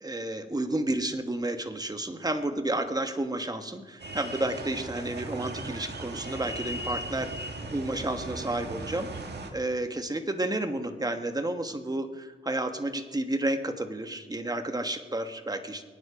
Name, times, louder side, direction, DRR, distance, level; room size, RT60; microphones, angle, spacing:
voice 1, 0.0-9.1 9.5-15.8, right 1 dB, 20° right, 7 dB, 1.4 m, -31 dB
sound 1, 4.0-9.5, right 2 dB, 55° right, 1.8 m, -38 dB
23.5 x 9.7 x 4.9 m, 1.3 s
cardioid pair, 70°, 21 cm